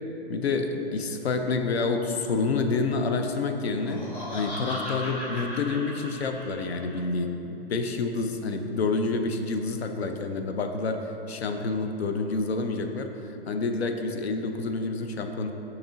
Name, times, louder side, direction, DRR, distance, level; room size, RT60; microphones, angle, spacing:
voice 1, 0.3-15.5, left 3 dB, 90° left, 6 dB, 0.5 m, -28 dB
Laughter, 3.7-7.0, left 1 dB, 20° left, 1.1 m, -36 dB
6.4 x 3.0 x 2.6 m, 3.0 s
hypercardioid pair, 125°, 31 cm